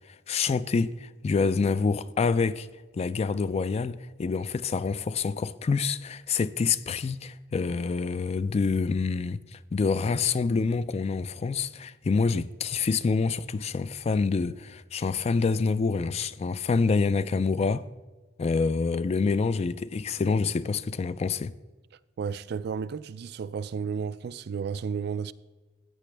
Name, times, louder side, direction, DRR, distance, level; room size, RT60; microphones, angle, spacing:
voice 1, 0.3-2.7 2.9-17.8 18.4-21.5, left 4 dB, 35° left, 0.3 m, -27 dB
voice 2, 22.2-25.3, right 6 dB, 60° right, 0.3 m, -32 dB
14.5 x 8.5 x 3.3 m
head